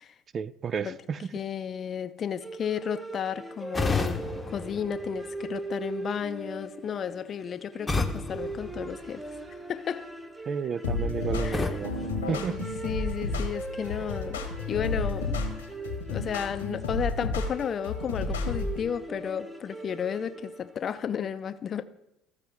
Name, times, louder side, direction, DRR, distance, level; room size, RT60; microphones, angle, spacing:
voice 1, 0.3-1.3 10.5-12.0 12.3-12.6, right 6 dB, 40° right, 0.3 m, -32 dB
voice 2, 1.3-9.3 9.7-10.1 11.4-11.7 12.3-15.4 16.1-21.8, left 8 dB, 45° left, 0.5 m, -33 dB
sound 1, 2.4-20.9, right 2 dB, 15° right, 0.9 m, -41 dB
sound 2, 3.7-5.7 7.9-9.6 11.5-13.1, left 3 dB, 20° left, 0.8 m, -33 dB
sound 3, 10.8-18.8, left 3 dB, 90° left, 1.2 m, -31 dB
14.5 x 4.9 x 3.5 m
hypercardioid pair, 70°, 0 cm